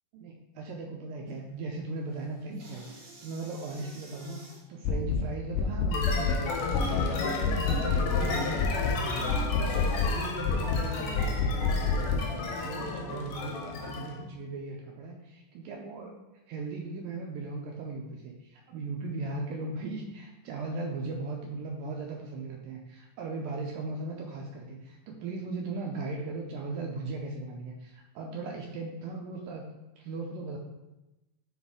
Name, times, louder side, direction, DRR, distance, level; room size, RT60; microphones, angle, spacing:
voice 1, 0.1-4.4 4.7-16.1 16.5-29.7 30.0-30.6, right 3 dB, 80° right, 0 dB, 2.2 m, -38 dB
sound 1, 1.3-1.6 2.0-4.6 6.3-10.1, right 2 dB, 50° right, 2.0 m, -51 dB
sound 2, 4.8-5.2 5.5-6.4 6.7-7.1 7.4-8.3 8.6-9.0 9.3-10.2 10.5-10.9 11.2-12.3, left 5 dB, 85° left, 2.3 m, -27 dB
sound 3, 5.9-14.2, left 3 dB, 70° left, 1.8 m, -33 dB
6.9 x 4.1 x 3.6 m, 0.98 s
omnidirectional pair, 4.1 m